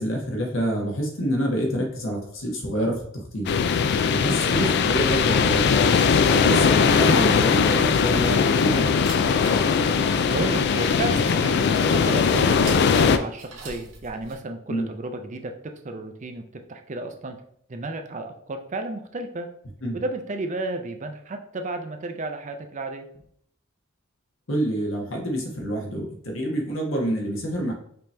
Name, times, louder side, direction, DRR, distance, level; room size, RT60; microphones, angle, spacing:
voice 1, 0.0-3.5 4.1-5.7 6.4-8.9 14.7-14.9 19.8-20.0 24.5-27.7, equal, 70° left, 0 dB, 1.3 m, -27 dB
sound 1, 3.5-13.2, left 6 dB, 55° left, 0.3 m, -20 dB
sound 2, 8.4-14.3, right 2 dB, 65° right, 1.2 m, -43 dB
voice 2, 10.3-16.4 16.7-17.4 17.7-19.5 19.9-23.3, right 2 dB, 35° right, 6 dB, 0.5 m, -32 dB
5.1 x 2.9 x 3.3 m, 0.65 s
head